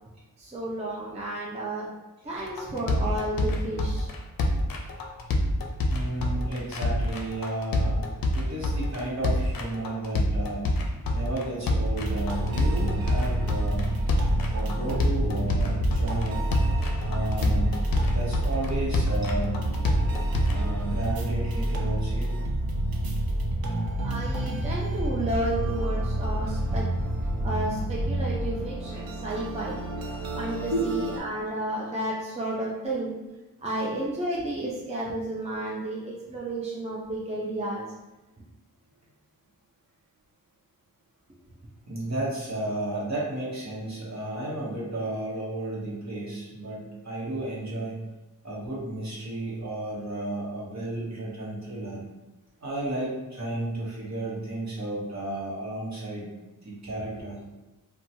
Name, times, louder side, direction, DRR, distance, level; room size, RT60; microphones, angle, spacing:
voice 1, 0.4-1.9 2.2-4.1 24.0-26.8 27.4-29.8 30.3-33.2 33.6-37.9, right 1 dB, 20° right, -5 dB, 0.5 m, -32 dB
sound 1, 2.4-20.6, left 1 dB, 70° left, 0.5 m, -27 dB
voice 2, 5.9-8.0 8.3-10.7 11.1-13.9 14.5-16.5 17.0-17.7 18.0-19.6 20.5-22.3 28.9-29.1 30.0-30.3 30.7-30.9 41.9-47.9 48.4-52.0 52.6-56.3 56.6-57.5, right 1 dB, 50° right, -5 dB, 1.0 m, -33 dB
sound 2, 12.0-31.2, right 1 dB, 80° right, 0.5 m, -29 dB
2.9 x 2.2 x 2.7 m, 1.1 s
wide cardioid pair, 65°, 35 cm